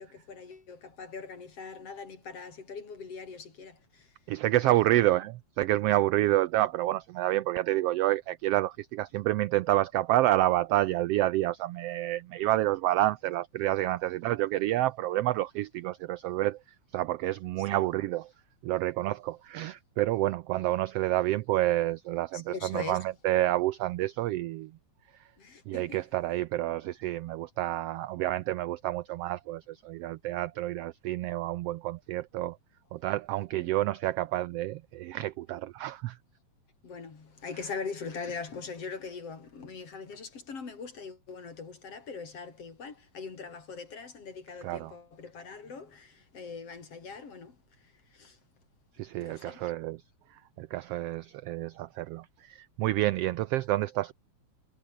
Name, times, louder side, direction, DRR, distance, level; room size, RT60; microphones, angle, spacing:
voice 1, 0.0-4.1 4.8-5.0 17.7-17.8 22.3-23.0 25.4-26.0 36.8-47.6 48.1-48.4 49.2-49.7, left 5 dB, 55° left, 4.7 m, -41 dB
voice 2, 4.3-16.6 16.9-18.3 18.6-24.7 25.7-32.6 32.9-36.2 44.6-44.9 49.0-50.0 50.6-54.1, right 15 dB, 80° right, 1.4 m, -29 dB
omnidirectional pair, 3.3 m